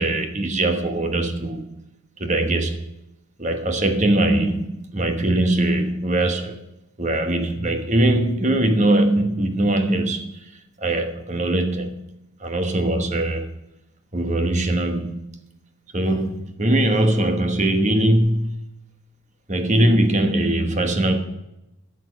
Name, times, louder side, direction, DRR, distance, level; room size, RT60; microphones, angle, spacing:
voice 1, 0.0-1.7 2.2-2.8 3.4-6.6 7.0-10.4 10.8-12.0 12.4-13.5 14.1-15.2 15.9-18.6 19.5-21.2, right 1 dB, 35° right, 1.1 m, -21 dB
12.5 x 7.2 x 6.2 m
head